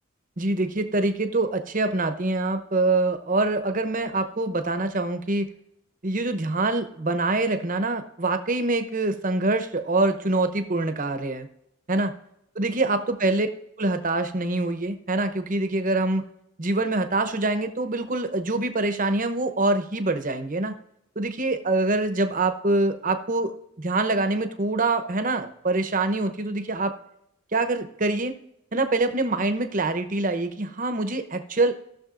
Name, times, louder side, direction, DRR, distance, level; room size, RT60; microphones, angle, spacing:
voice 1, 0.4-5.5 6.0-11.5 11.9-12.1 12.6-13.5 13.8-16.2 16.6-20.7 21.2-23.5 23.8-26.9 27.5-28.3 28.7-31.7, right 2 dB, 40° right, 8 dB, 0.8 m, -25 dB
17.5 x 6.4 x 2.5 m, 0.81 s
head